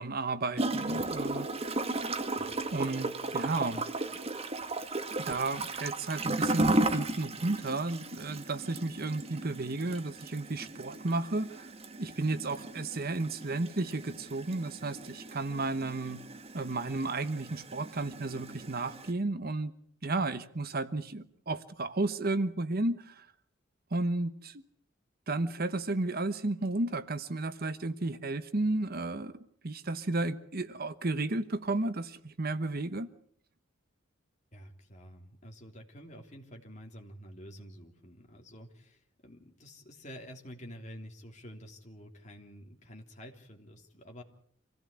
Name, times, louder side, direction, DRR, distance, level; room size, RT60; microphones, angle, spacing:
voice 1, 0.0-1.5 2.7-3.8 5.2-11.7 12.0-16.2 16.5-19.7 20.0-23.3 23.9-24.6 25.3-29.4 29.6-33.1, right 2 dB, 45° right, 12 dB, 1.0 m, -33 dB
Gurgling / Toilet flush, 0.6-19.1, right 2 dB, 30° right, 1.6 m, -35 dB
voice 2, 34.5-44.2, equal, 35° left, 2 dB, 3.3 m, -49 dB
26.0 x 16.0 x 8.5 m, 0.63 s
head